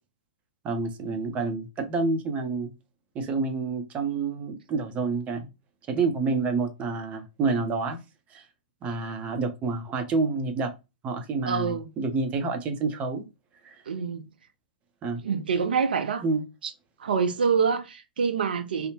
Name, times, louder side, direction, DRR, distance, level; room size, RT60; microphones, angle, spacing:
voice 1, 0.6-2.7 3.1-5.5 5.9-8.0 8.3-8.5 8.8-10.7 11.0-13.2 13.6-13.8 15.0-15.2 16.2-16.4, right 4 dB, 25° right, 0.6 m, -28 dB
voice 2, 11.5-11.9 13.9-14.2 15.2-16.2 17.0-18.9, right 5 dB, 70° right, 0.5 m, -26 dB
2.8 x 2.0 x 2.8 m
hypercardioid pair, 115°, 5 cm